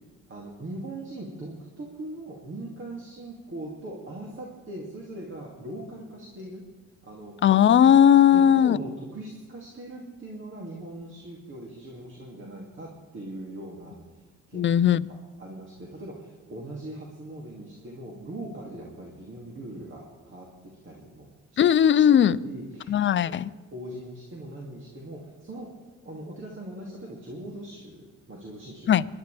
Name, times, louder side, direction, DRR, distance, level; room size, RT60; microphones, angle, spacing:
voice 1, 0.3-6.6 7.0-7.4 8.3-14.0 14.5-14.7 15.1-21.6 22.4-23.0 23.3-23.4 23.7-25.7 26.0-29.0, right 1 dB, 40° right, 2.5 m, -40 dB
voice 2, 7.4-8.8 14.5-15.0 21.6-22.4 22.9-23.5 28.9-29.1, left 9 dB, 40° left, 0.5 m, -18 dB
24.0 x 11.5 x 3.4 m
cardioid pair, 90°, 30 cm